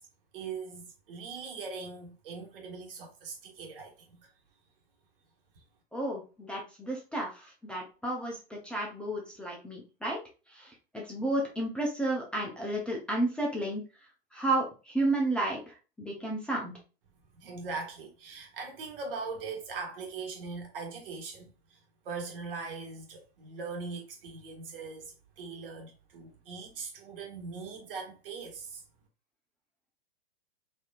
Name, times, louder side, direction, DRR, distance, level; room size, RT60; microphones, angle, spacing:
voice 1, 0.3-4.2 17.3-21.8 22.0-28.8, right 4 dB, 60° right, 1.5 m, -41 dB
voice 2, 5.9-10.2 10.5-13.8 14.3-16.7, right 2 dB, 5° left, 0.7 m, -32 dB
4.3 x 2.8 x 2.4 m
hypercardioid pair, 115°, 31 cm